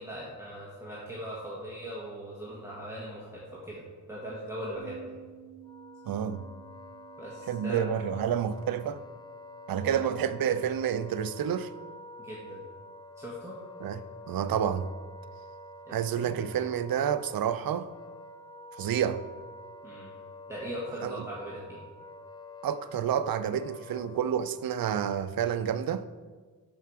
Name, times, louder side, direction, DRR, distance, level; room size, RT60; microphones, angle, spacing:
voice 1, 0.0-3.8 4.1-5.2 7.2-7.8 9.8-10.1 12.2-12.6 13.2-13.6 15.9-16.3 19.8-20.1 20.5-21.8, equal, 10° right, 1.4 m, -40 dB
Bass guitar, 4.7-11.0, right 14 dB, 60° right, 1.2 m, -54 dB
Wind instrument woodwind instrument, 5.6-24.7, left 2 dB, 15° left, 0.4 m, -48 dB
voice 2, 6.1-6.4 7.5-9.0 9.7-11.7 13.8-14.9 15.9-17.9 18.8-19.2 21.0-21.2 22.6-26.1, right 9 dB, 75° right, 0.5 m, -29 dB
11.5 x 4.6 x 4.8 m
wide cardioid pair, 130°, 35 cm